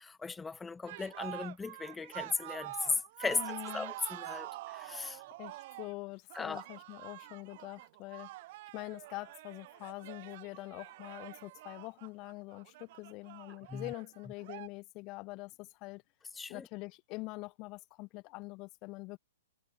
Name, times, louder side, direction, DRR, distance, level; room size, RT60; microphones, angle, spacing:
voice 1, 0.0-5.2 6.3-6.6 13.7-13.9 16.3-16.7, left 4 dB, 10° left, 3.7 m, -37 dB
sound 1, 0.9-14.7, right 18 dB, 45° right, 5.1 m, -46 dB
voice 2, 3.4-3.9 5.0-8.3 8.7-16.0 16.5-19.2, left 24 dB, 30° left, 5.4 m, -45 dB
hypercardioid pair, 145°, 0 cm